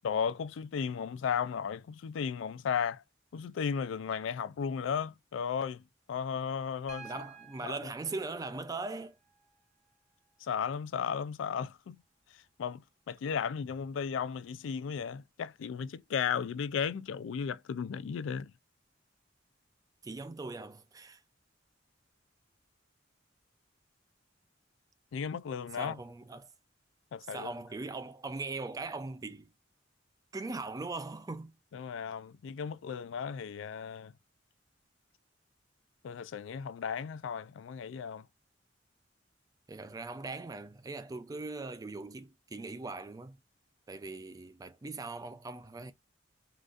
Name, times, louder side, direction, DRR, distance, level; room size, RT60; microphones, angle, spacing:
voice 1, 0.0-3.0 3.3-5.8 6.1-7.1 7.6-7.8 10.4-12.0 12.6-12.8 13.1-18.5 25.1-26.0 27.1-27.5 31.7-34.1 36.0-38.2, left 7 dB, 85° left, 0.3 m, -35 dB
Piano, 6.9-10.9 12.5-12.6, right 5 dB, 40° right, 0.8 m, -54 dB
voice 2, 7.0-9.2 20.0-21.2 25.7-26.5 27.2-29.5 30.3-31.6 39.7-43.4 43.9-45.9, right 3 dB, 20° right, 0.3 m, -40 dB
3.8 x 2.4 x 2.4 m
head